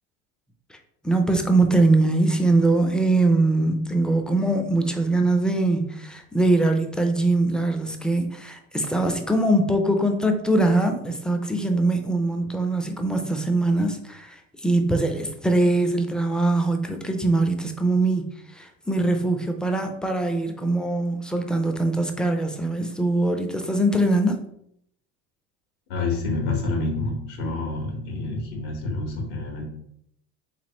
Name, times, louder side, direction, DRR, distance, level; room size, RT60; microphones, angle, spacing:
voice 1, 1.0-24.4, right 2 dB, ahead, 5 dB, 0.4 m, -22 dB
voice 2, 25.9-29.6, left 3 dB, 70° left, 0 dB, 1.5 m, -28 dB
3.5 x 3.2 x 3.0 m, 0.73 s
hypercardioid pair, 85°, 35 cm